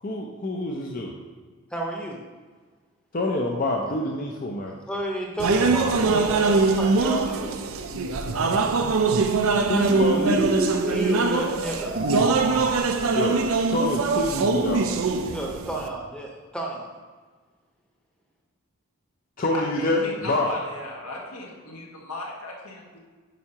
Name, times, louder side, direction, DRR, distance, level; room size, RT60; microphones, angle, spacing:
voice 1, 0.0-1.1 3.1-4.7 9.7-10.6 13.1-15.0 19.4-20.5, left 1 dB, 40° left, 0 dB, 0.5 m, -27 dB
voice 2, 1.7-2.2 4.9-7.5 10.8-12.0 15.3-16.9, right 1 dB, 5° left, -1 dB, 0.8 m, -31 dB
sound 1, 5.4-15.9, right 4 dB, 70° right, 0.5 m, -23 dB
sound 2, 7.9-12.8, right 1 dB, 50° right, 0.9 m, -30 dB
voice 3, 19.5-23.0, left 2 dB, 90° left, -2 dB, 1.6 m, -37 dB
9.0 x 5.6 x 2.9 m, 1.4 s
head